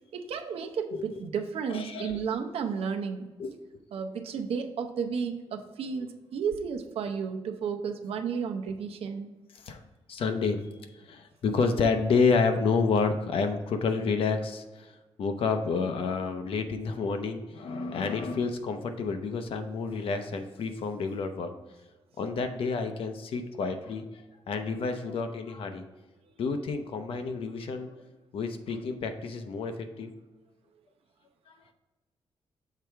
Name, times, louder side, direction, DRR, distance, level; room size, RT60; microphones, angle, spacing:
voice 1, 0.1-3.3 3.9-9.3, right 6 dB, 85° right, 5 dB, 0.7 m, -32 dB
voice 2, 1.7-2.2 3.4-3.5 9.6-9.8 10.1-10.6 11.1-14.9 15.2-21.5 22.2-24.0 24.5-25.8 26.4-27.9 28.3-30.1, left 4 dB, 70° left, 7 dB, 0.8 m, -29 dB
6.8 x 4.5 x 3.4 m, 1.2 s
wide cardioid pair, 170°, 10 cm